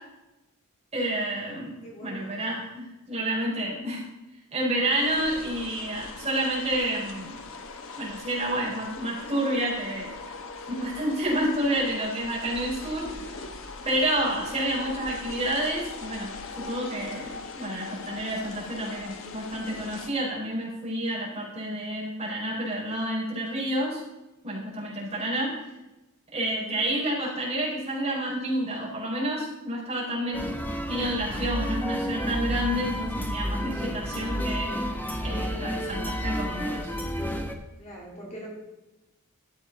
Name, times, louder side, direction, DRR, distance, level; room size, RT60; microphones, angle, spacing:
voice 1, 0.9-1.7 2.0-4.0 4.5-7.4 8.0-10.1 10.7-13.4 13.8-16.3 16.6-24.0 24.4-25.5 26.3-30.4 30.9-34.7 35.2-36.9, right 1 dB, 30° right, -5 dB, 4.2 m, -29 dB
voice 2, 1.8-2.4 26.6-26.8 37.8-38.5, equal, 30° left, -3 dB, 2.4 m, -42 dB
sound 1, 4.9-20.1, left 4 dB, 65° left, 1.1 m, -40 dB
sound 2, 30.3-37.5, equal, 10° left, 1.0 m, -31 dB
12.5 x 8.0 x 4.0 m, 1.0 s
head